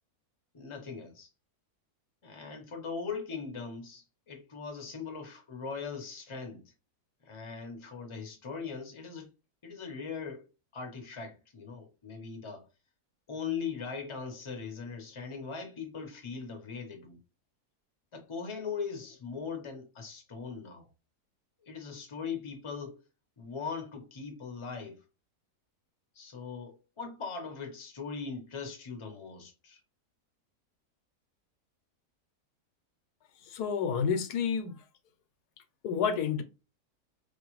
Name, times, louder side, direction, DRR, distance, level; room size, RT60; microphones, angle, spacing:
voice 1, 0.5-1.3 2.2-6.6 7.2-9.3 9.6-10.4 10.7-12.6 13.3-17.2 18.1-20.9 21.7-22.9 23.4-25.0 26.1-29.8, left 5 dB, 25° left, 0.8 m, -40 dB
voice 2, 33.5-34.8 35.8-36.4, left 6 dB, 85° left, 1.2 m, -29 dB
4.8 x 2.4 x 3.0 m
omnidirectional pair, 1.6 m